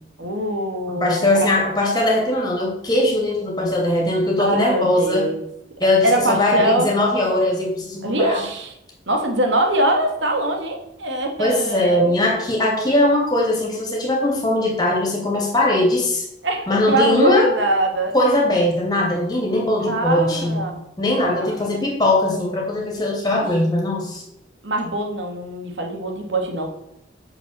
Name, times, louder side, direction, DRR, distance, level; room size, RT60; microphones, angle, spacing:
voice 1, 0.2-1.3 4.4-5.4 5.8-6.9 8.0-8.7 9.1-12.0 16.4-18.1 19.8-20.8 21.4-21.6 24.6-26.7, right 1 dB, 75° right, 3 dB, 1.9 m, -22 dB
voice 2, 0.9-5.3 5.8-8.4 11.4-16.3 16.7-17.5 18.1-24.2, left 1 dB, 20° left, -1 dB, 2.6 m, -20 dB
6.6 x 6.1 x 7.3 m, 0.78 s
head